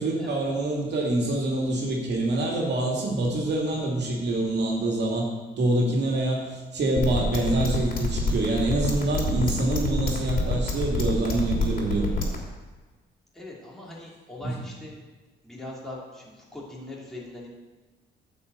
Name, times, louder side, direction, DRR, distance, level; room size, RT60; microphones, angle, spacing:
voice 1, 0.0-5.3 5.6-12.1 14.4-14.5, right 2 dB, 60° right, -1 dB, 2.5 m, -26 dB
sound 1, 7.0-12.4, left 4 dB, 45° left, 3.1 m, -26 dB
voice 2, 13.3-14.9 15.4-17.5, left 2 dB, ahead, -5 dB, 3.1 m, -41 dB
9.6 x 5.5 x 8.2 m, 1.3 s
cardioid pair, 90°, 20 cm